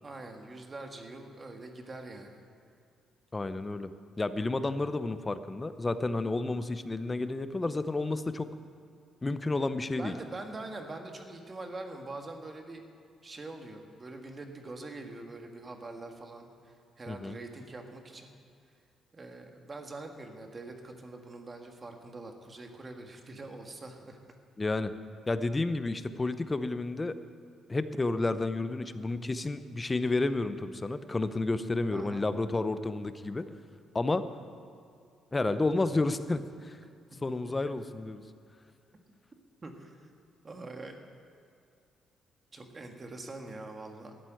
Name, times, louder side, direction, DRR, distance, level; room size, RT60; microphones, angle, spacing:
voice 1, 0.0-2.4 10.0-12.8 13.2-18.3 19.1-24.3 31.9-32.2 39.6-40.1 40.4-41.0 42.5-44.1, right 2 dB, 30° right, 4 dB, 1.7 m, -44 dB
voice 2, 3.3-3.9 4.2-8.5 9.2-10.1 17.1-17.4 24.6-24.9 25.3-27.1 27.7-33.4 33.9-34.2 35.3-36.8 37.2-38.2, left 2 dB, 20° left, 12 dB, 0.7 m, -31 dB
12.0 x 8.2 x 9.2 m, 2.5 s
cardioid pair, 90°, 0 cm